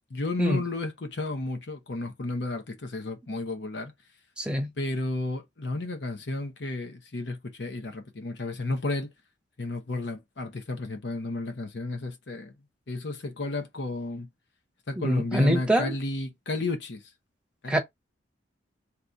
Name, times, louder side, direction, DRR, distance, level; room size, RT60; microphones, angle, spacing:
voice 1, 0.1-3.9 4.8-9.1 9.6-12.5 12.9-14.3 14.9-17.1 17.6-17.8, left 2 dB, 65° left, 0.8 m, -32 dB
voice 2, 4.4-4.7 15.0-15.9 17.7-17.8, equal, 5° right, 0.8 m, -24 dB
3.5 x 3.0 x 3.9 m
head